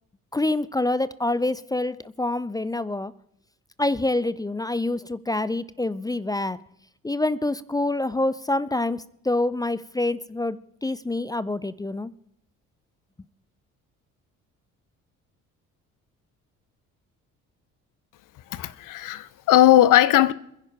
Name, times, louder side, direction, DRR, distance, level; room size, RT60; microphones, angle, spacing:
voice 1, 0.3-3.1 3.8-6.6 7.0-12.1, left 2 dB, 10° left, 0.5 m, -26 dB
voice 2, 18.5-20.3, left 13 dB, 50° left, 0.9 m, -18 dB
27.0 x 10.5 x 3.5 m
figure-of-eight pair, 45°, 41 cm